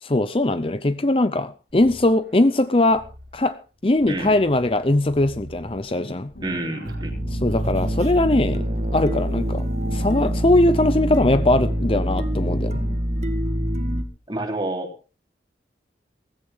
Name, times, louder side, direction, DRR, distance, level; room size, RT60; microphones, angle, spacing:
voice 1, 0.0-3.1 3.3-6.3 7.3-8.7 8.9-9.6 9.9-12.8, left 2 dB, 30° left, 0.6 m, -20 dB
sound 1, 1.7-8.6, right 1 dB, 85° right, 2.9 m, -44 dB
sound 2, 5.9-13.0, left 1 dB, 70° left, 3.4 m, -41 dB
voice 2, 6.4-7.1 14.3-14.9, right 1 dB, 25° right, 3.5 m, -28 dB
sound 3, 6.8-14.0, equal, 40° right, 1.6 m, -25 dB
16.5 x 16.0 x 3.6 m
head